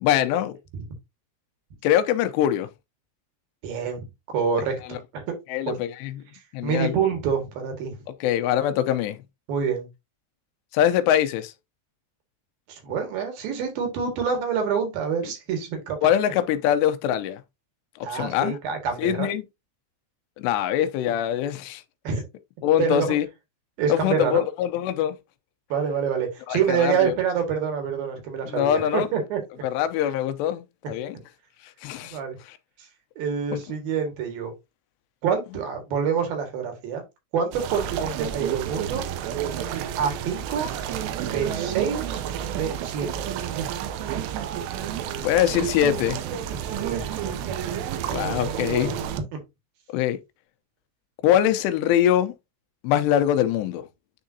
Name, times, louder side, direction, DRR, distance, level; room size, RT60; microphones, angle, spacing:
voice 1, 0.0-0.6 1.8-2.7 5.5-6.1 6.5-6.9 8.2-9.2 10.7-11.5 16.0-17.4 18.1-18.6 19.0-19.4 20.4-21.8 22.6-23.3 23.9-25.2 26.5-27.1 28.5-29.1 29.6-31.2 31.8-32.2 32.5-32.6 33.5-33.6 45.2-46.2 48.1-48.9 49.9-50.2 51.2-52.3 52.8-53.8, left 11 dB, 85° left, 2.9 m, -23 dB
voice 2, 3.6-5.2 5.7-5.8 6.6-8.0 9.5-9.9 12.7-16.0 18.0-19.3 22.0-22.2 22.8-23.1 23.8-24.4 25.7-29.4 32.1-32.4 32.8-32.9 33.2-34.5 35.2-37.0 37.3-39.0 40.0-40.7 41.2-42.2 42.6-43.3 46.7-47.3 47.7-49.0 49.3-49.4, right 6 dB, 65° right, 3.4 m, -27 dB
sound 1, 37.5-49.2, right 9 dB, 90° right, 2.9 m, -30 dB
9.8 x 3.7 x 2.7 m
omnidirectional pair, 4.8 m